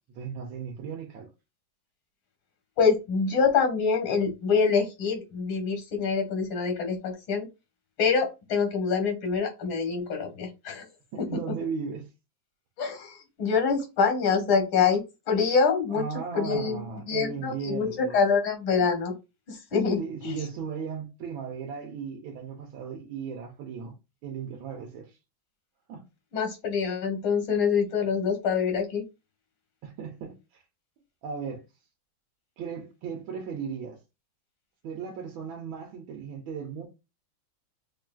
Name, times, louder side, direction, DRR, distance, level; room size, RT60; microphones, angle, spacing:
voice 1, 0.1-1.3 11.1-12.1 14.2-14.6 15.9-18.2 20.0-23.9 24.2-25.2 25.9-26.0 29.8-30.6 31.2-31.6 32.6-34.0 34.8-36.8, right 6 dB, 90° right, 1.6 m, -36 dB
voice 2, 2.8-7.5 8.0-10.8 11.2-11.3 12.8-16.0 16.3-19.1 19.5-20.4 26.3-29.0, left 5 dB, 85° left, 2.3 m, -25 dB
6.1 x 2.5 x 2.3 m
omnidirectional pair, 2.2 m